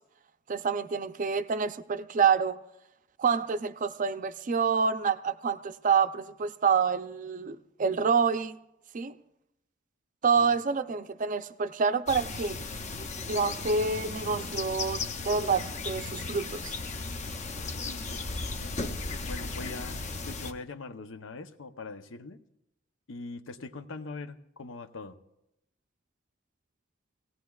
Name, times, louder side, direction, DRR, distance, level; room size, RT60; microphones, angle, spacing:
voice 1, 0.5-2.6 3.2-8.6 8.9-9.1 10.2-12.6 13.3-16.7, right 5 dB, 40° right, 0.4 m, -27 dB
sound 1, 12.1-20.5, left 3 dB, 35° left, 0.5 m, -36 dB
voice 2, 17.8-22.4 23.1-25.2, left 3 dB, 90° left, 0.7 m, -42 dB
17.5 x 17.0 x 2.3 m
head